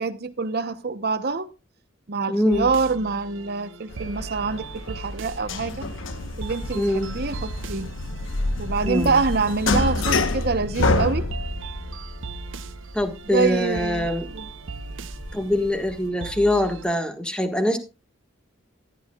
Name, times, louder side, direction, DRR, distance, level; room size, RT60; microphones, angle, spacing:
voice 1, 0.0-1.5 2.1-5.8 6.4-7.9 8.6-11.2 13.3-14.5, right 4 dB, 55° right, 0.9 m, -26 dB
voice 2, 2.3-2.7 6.7-7.1 8.8-9.2 12.9-14.3 15.3-17.8, left 1 dB, 5° left, 1.6 m, -23 dB
sound 1, 2.5-16.8, right 4 dB, 80° right, 0.7 m, -38 dB
sound 2, 3.9-16.1, left 2 dB, 85° left, 1.1 m, -28 dB
14.5 x 11.0 x 2.4 m
head